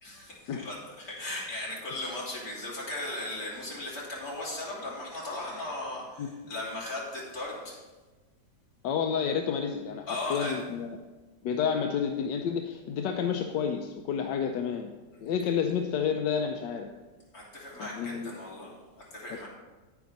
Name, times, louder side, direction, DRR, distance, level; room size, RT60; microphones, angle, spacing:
voice 1, 0.0-7.8 10.1-10.6 17.3-19.5, left 2 dB, 55° left, -5 dB, 3.5 m, -37 dB
voice 2, 8.8-11.0 11.4-14.9 15.2-16.9 17.8-18.3, left 7 dB, 85° left, 5 dB, 1.3 m, -30 dB
9.9 x 9.5 x 4.0 m, 1.2 s
omnidirectional pair, 1.8 m